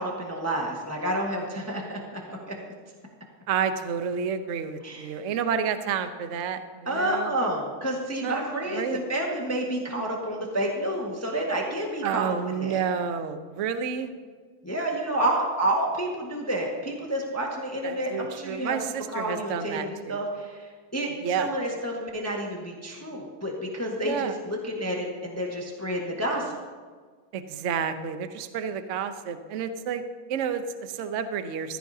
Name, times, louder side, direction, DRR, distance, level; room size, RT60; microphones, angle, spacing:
voice 1, 0.0-2.6 4.8-5.2 6.8-12.8 14.6-18.8 19.1-26.6, right 1 dB, 10° left, -1 dB, 1.1 m, -29 dB
voice 2, 3.5-7.3 8.2-8.3 8.7-9.0 12.0-14.1 17.8-20.2 21.2-21.5 24.0-24.3 27.3-30.0 30.3-31.8, right 7 dB, 85° right, 9 dB, 0.6 m, -30 dB
15.0 x 14.0 x 2.8 m, 1.5 s
omnidirectional pair, 2.4 m